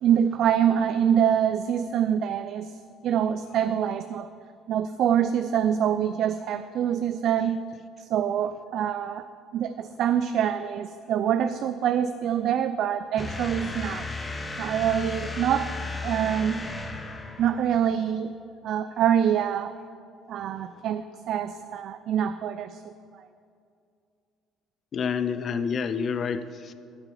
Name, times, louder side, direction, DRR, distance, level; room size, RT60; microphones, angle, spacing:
voice 1, 0.0-2.7 3.0-4.3 4.7-7.6 8.0-9.3 9.5-14.1 14.6-15.7 16.0-16.7 17.4-18.3 18.6-19.7 20.3-22.9, right 9 dB, 60° right, 11 dB, 0.4 m, -25 dB
sound 1, 13.2-17.9, left 2 dB, 25° left, 1.2 m, -35 dB
voice 2, 24.9-26.7, left 6 dB, 50° left, 11 dB, 0.6 m, -28 dB
9.5 x 5.9 x 8.5 m, 2.4 s
supercardioid pair, 70°, 0 cm